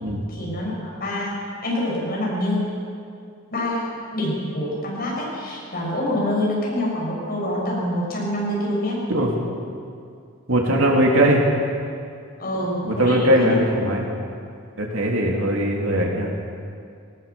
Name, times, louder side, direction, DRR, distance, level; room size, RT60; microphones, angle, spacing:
voice 1, 0.3-2.7 3.5-9.0 12.4-13.6, left 1 dB, 45° left, -4 dB, 6.9 m, -26 dB
voice 2, 10.5-11.4 12.8-14.1 14.8-16.3, right 1 dB, 70° right, -1 dB, 3.3 m, -20 dB
19.0 x 19.0 x 7.2 m, 2.4 s
head